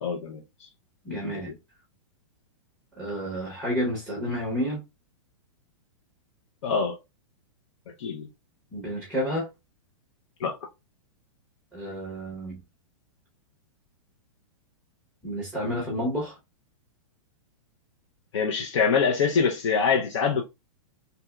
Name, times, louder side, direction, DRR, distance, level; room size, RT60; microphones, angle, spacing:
voice 1, 0.0-0.7 1.1-1.6 6.6-7.0 8.0-8.3 10.4-10.6 18.3-20.4, left 6 dB, 60° left, 0.6 m, -25 dB
voice 2, 1.0-1.5 3.0-4.8 8.7-9.5 11.7-12.6 15.2-16.4, equal, ahead, 0.7 m, -30 dB
3.4 x 2.8 x 2.2 m
hypercardioid pair, 170°, 17 cm